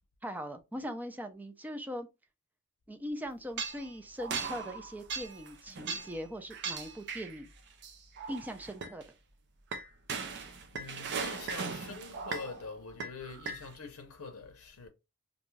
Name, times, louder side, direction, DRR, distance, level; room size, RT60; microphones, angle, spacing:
voice 1, 0.2-2.1 2.9-7.5 8.3-9.1, equal, 10° right, 0.4 m, -40 dB
sound 1, 3.6-3.9 4.2-6.2 6.5-7.4 7.8-9.0 9.7-12.7 13.0-13.7, right 5 dB, 55° right, 0.5 m, -38 dB
voice 2, 10.1-14.9, left 4 dB, 80° left, 0.6 m, -45 dB
2.5 x 2.3 x 3.1 m
head